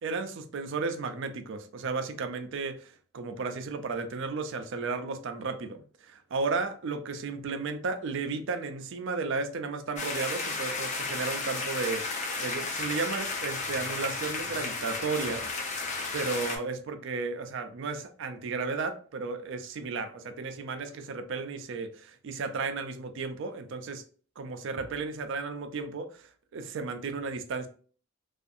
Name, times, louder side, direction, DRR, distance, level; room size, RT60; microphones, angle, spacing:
voice 1, 0.0-15.5 16.1-24.0 24.4-27.7, right 4 dB, 60° right, 0.4 m, -34 dB
sound 1, 10.0-16.6, left 3 dB, 35° left, 0.5 m, -33 dB
2.6 x 2.4 x 2.4 m
head